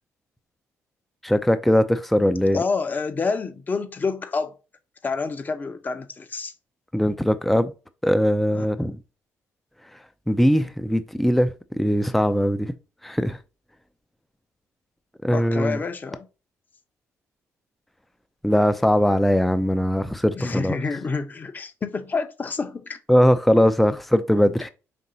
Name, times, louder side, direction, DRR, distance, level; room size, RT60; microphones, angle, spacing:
voice 1, 1.2-2.6 6.9-7.7 8.0-9.0 10.3-12.7 13.0-13.4 15.2-15.8 18.4-20.8 23.1-24.7, equal, ahead, 0.4 m, -20 dB
voice 2, 2.5-4.5 5.0-6.5 8.5-8.7 15.3-16.3 20.3-23.0, left 4 dB, 30° left, 0.7 m, -28 dB
5.3 x 2.9 x 2.7 m
cardioid pair, 105°, 6 cm